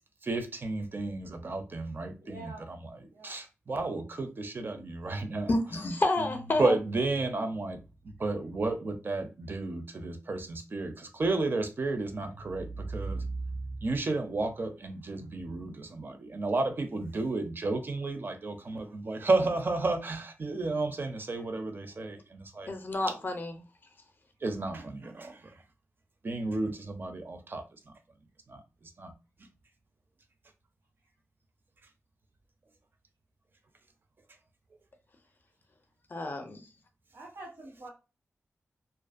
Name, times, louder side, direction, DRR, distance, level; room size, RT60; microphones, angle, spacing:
voice 1, 0.2-2.5 3.2-5.5 6.6-7.8 8.2-13.3 13.8-22.7 24.4-25.4 26.2-27.6 28.5-28.6 29.0-29.1, right 3 dB, 40° right, 0.4 m, -32 dB
voice 2, 2.2-2.7 3.1-3.4 37.1-37.9, right 2 dB, 90° right, 1.2 m, -46 dB
voice 3, 5.5-6.8 22.7-23.6 36.1-36.6, left 2 dB, 35° left, 0.4 m, -30 dB
2.4 x 2.1 x 2.4 m
wide cardioid pair, 95°, 5 cm